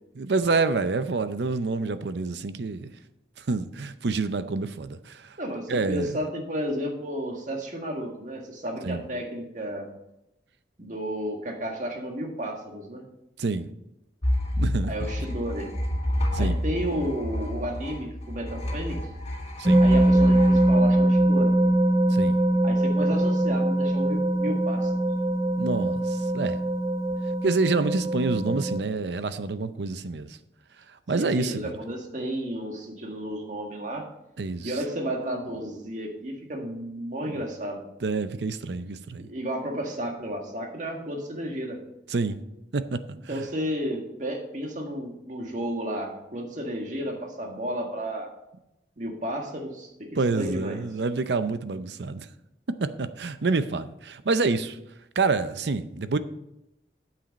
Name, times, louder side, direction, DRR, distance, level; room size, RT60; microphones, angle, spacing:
voice 1, 0.1-2.9 3.4-5.4 5.7-6.2 8.8-9.0 13.4-13.7 14.6-14.9 16.3-16.6 19.6-19.8 22.1-22.4 25.6-26.6 27.4-30.4 30.9-31.7 34.4-34.8 37.3-37.4 38.0-39.3 42.1-42.4 42.7-43.4 50.2-52.3 52.7-54.8 55.2-56.2, right 3 dB, 75° right, 0.6 m, -27 dB
voice 2, 5.4-9.9 10.8-13.0 14.9-15.7 16.4-19.0 19.8-21.5 22.6-24.9 31.1-34.1 34.6-37.9 39.2-41.8 43.3-48.3 49.0-50.8, equal, 45° right, 1.7 m, -32 dB
sound 1, 14.2-21.7, left 1 dB, 35° left, 1.8 m, -29 dB
sound 2, 19.7-28.8, right 1 dB, 20° right, 0.5 m, -22 dB
9.0 x 7.7 x 4.1 m
head